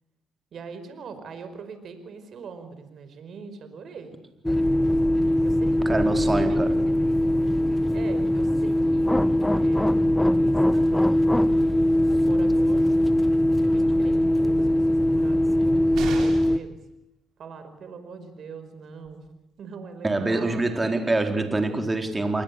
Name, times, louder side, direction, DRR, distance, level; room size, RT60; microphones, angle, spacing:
voice 1, 0.5-4.2 4.5-4.9 5.4-6.7 7.0-7.2 7.9-9.1 9.6-10.9 11.5-12.0 12.2-13.0 13.5-16.8 17.4-19.3 19.6-20.7, right 5 dB, 60° right, 9 dB, 5.0 m, -42 dB
sound 1, 4.4-16.6, left 1 dB, 5° left, 1.3 m, -21 dB
voice 2, 5.9-6.7 20.0-22.4, right 2 dB, 20° right, 5 dB, 4.5 m, -25 dB
sound 2, 15.9-16.7 18.6-18.7 19.0-19.1, right 6 dB, 80° right, 7.2 m, -35 dB
29.0 x 20.5 x 8.5 m, 0.83 s
cardioid pair, 90°, 0 cm